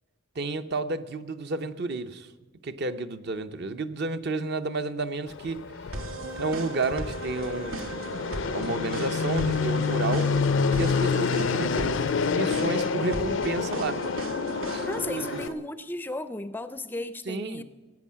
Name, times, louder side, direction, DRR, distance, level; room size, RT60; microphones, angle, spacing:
voice 1, 0.4-2.3 2.6-5.6 6.4-8.1 8.5-10.3 10.7-12.0 12.3-14.0 14.7-15.4 17.3-17.6, right 3 dB, 55° right, 9 dB, 0.7 m, -31 dB
Fixed-wing aircraft airplane, 5.3-15.5, left 5 dB, 65° left, 0.5 m, -28 dB
sound 1, 5.9-15.5, right 1 dB, 85° right, 1.4 m, -36 dB
voice 2, 14.8-17.6, left 1 dB, 10° left, 13 dB, 0.4 m, -35 dB
16.5 x 8.5 x 7.4 m, 1.3 s
head